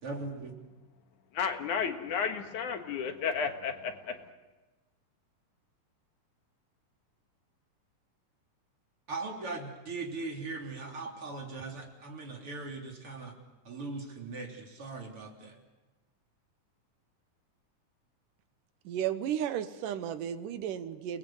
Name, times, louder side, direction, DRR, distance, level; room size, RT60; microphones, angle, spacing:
voice 1, 0.0-0.5 9.1-13.3 13.6-15.6, right 3 dB, 40° right, 0 dB, 4.2 m, -39 dB
voice 2, 1.3-4.3, left 6 dB, 70° left, 6 dB, 2.9 m, -33 dB
voice 3, 18.9-21.2, right 10 dB, 80° right, 11 dB, 2.6 m, -33 dB
30.0 x 20.0 x 7.9 m, 1.2 s
omnidirectional pair, 3.7 m